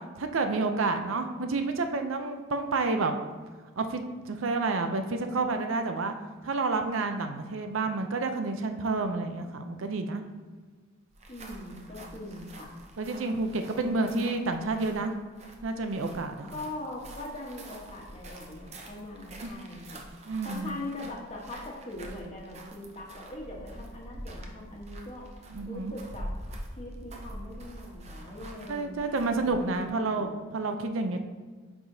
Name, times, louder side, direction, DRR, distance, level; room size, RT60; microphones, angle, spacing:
voice 1, 0.2-3.1 3.8-6.1 6.4-10.2 13.0-15.1 15.6-16.5 19.4-19.5 20.3-20.8 25.5-25.9 28.7-31.2, right 3 dB, 85° right, 6 dB, 0.5 m, -29 dB
sound 1, 11.1-30.0, right 1 dB, 35° right, 0.6 m, -45 dB
voice 2, 11.3-12.7 13.7-13.8 16.5-20.0 20.4-25.3 25.7-26.3 26.7-30.4, left 1 dB, 30° left, -2 dB, 1.1 m, -41 dB
8.6 x 4.8 x 2.7 m, 1.5 s
head